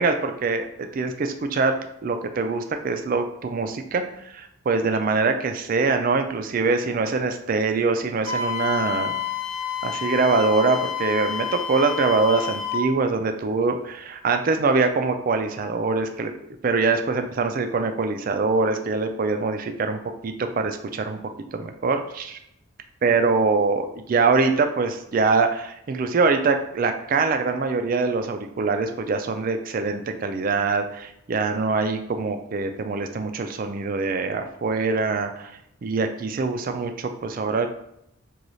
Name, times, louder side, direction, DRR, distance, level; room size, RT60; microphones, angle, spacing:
voice 1, 0.0-9.1 9.8-16.3 16.6-21.2 21.5-22.4 23.0-35.5 35.8-37.7, right 4 dB, 40° right, 6 dB, 0.3 m, -24 dB
Wind instrument woodwind instrument, 8.2-12.9, left 7 dB, 35° left, 0.4 m, -29 dB
3.1 x 2.3 x 3.9 m, 0.78 s
head